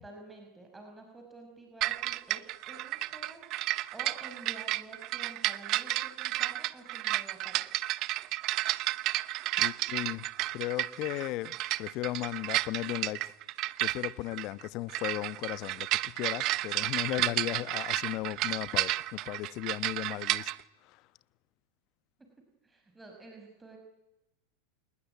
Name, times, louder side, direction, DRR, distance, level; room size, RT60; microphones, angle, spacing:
voice 1, 0.0-7.7 22.6-23.8, right 2 dB, 10° right, 5.9 m, -50 dB
sound 1, 1.8-20.6, right 17 dB, 50° right, 0.9 m, -32 dB
voice 2, 9.6-10.3 10.5-13.3 13.8-20.5 20.8-21.0, left 17 dB, 50° left, 1.1 m, -36 dB
28.0 x 20.5 x 9.2 m
hypercardioid pair, 95°, 0 cm